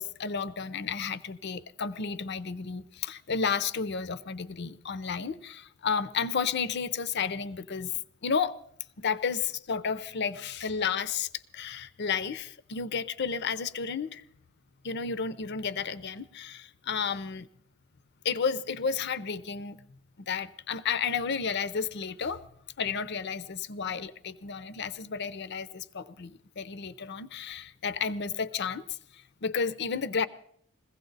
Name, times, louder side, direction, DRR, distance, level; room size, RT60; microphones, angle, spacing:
voice 1, 0.0-7.9 8.2-8.5 9.0-14.2 14.8-17.5 18.2-19.8 20.3-22.4 22.8-30.3, left 6 dB, 55° left, 0.6 m, -32 dB
22.0 x 16.0 x 4.0 m
head